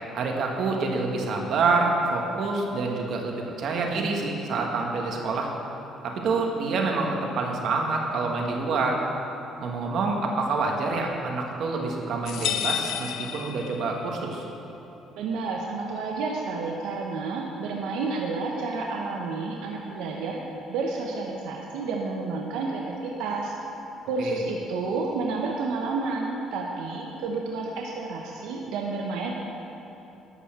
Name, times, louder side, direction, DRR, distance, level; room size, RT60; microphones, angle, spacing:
voice 1, 0.1-5.5 6.0-9.0 9.6-14.4 24.2-24.4, right 3 dB, 65° right, 1 dB, 1.5 m, -27 dB
sound 1, 12.3-14.2, left 10 dB, 75° left, 0.4 m, -31 dB
voice 2, 15.2-20.4 20.7-23.5 24.1-29.3, right 3 dB, 85° right, -1 dB, 0.9 m, -30 dB
11.0 x 5.5 x 7.4 m, 3.0 s
cardioid pair, 100°, 0 cm